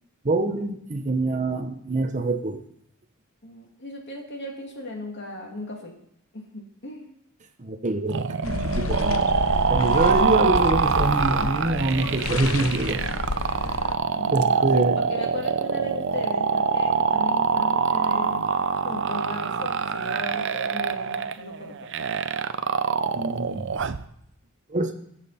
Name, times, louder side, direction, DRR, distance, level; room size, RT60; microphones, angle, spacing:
voice 1, 0.2-2.6 7.6-9.3 9.7-13.0 14.3-15.0 23.2-23.7 24.7-24.9, right 2 dB, 35° right, 6 dB, 0.9 m, -25 dB
voice 2, 3.4-5.9 6.3-7.1 14.2-18.5 18.8-21.9, left 1 dB, 55° left, 0 dB, 2.7 m, -37 dB
sound 1, 8.1-24.1, right 5 dB, 55° right, 0.6 m, -24 dB
sound 2, 8.4-13.9, left 3 dB, 70° left, 0.9 m, -30 dB
22.0 x 7.5 x 4.3 m, 0.75 s
head